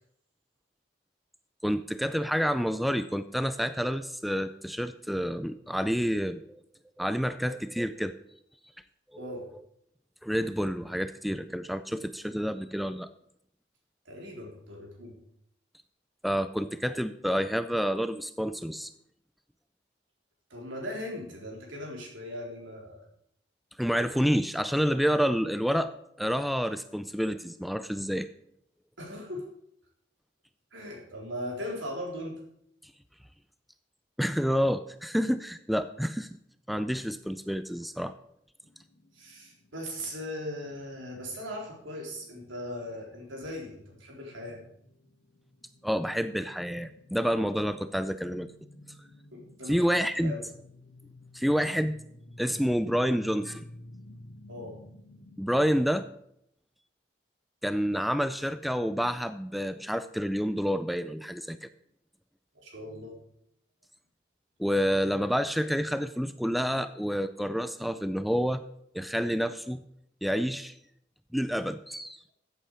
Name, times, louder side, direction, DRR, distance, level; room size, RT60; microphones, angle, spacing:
voice 1, 1.6-6.6 7.0-8.1 9.1-9.4 10.2-13.1 16.2-18.9 23.8-25.9 26.2-28.3 34.2-36.3 36.7-38.1 45.8-48.5 49.7-50.4 51.3-52.0 52.4-53.7 55.4-56.1 57.6-61.7 64.6-68.6 68.9-69.8 70.2-70.7 71.3-72.2, equal, ahead, 12 dB, 0.3 m, -28 dB
voice 2, 9.2-9.5 14.1-15.1 20.5-23.1 29.0-29.4 30.7-32.4 39.1-44.6 49.3-50.4 54.5-54.8 62.5-63.1, left 1 dB, 90° right, -1 dB, 4.0 m, -39 dB
sound 1, 38.6-56.0, left 1 dB, 65° left, 1.4 m, -53 dB
14.5 x 8.3 x 4.9 m, 0.74 s
head